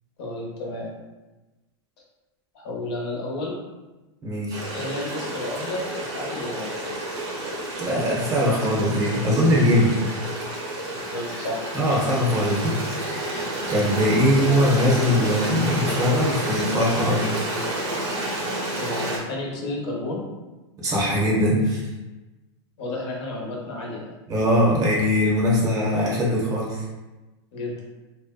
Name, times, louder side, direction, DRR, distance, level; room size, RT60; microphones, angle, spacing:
voice 1, 0.2-0.9 2.5-3.5 4.7-6.7 10.9-11.7 18.8-20.2 22.8-24.1 27.5-27.8, left 2 dB, 60° left, -3 dB, 0.7 m, -32 dB
voice 2, 4.2-4.6 7.8-10.2 11.7-13.4 13.7-17.2 20.8-21.8 24.3-26.8, equal, 25° right, -4 dB, 0.7 m, -21 dB
Stream, 4.5-19.2, right 1 dB, 65° right, 0.9 m, -30 dB
2.6 x 2.1 x 2.3 m, 1.1 s
supercardioid pair, 135°, 15 cm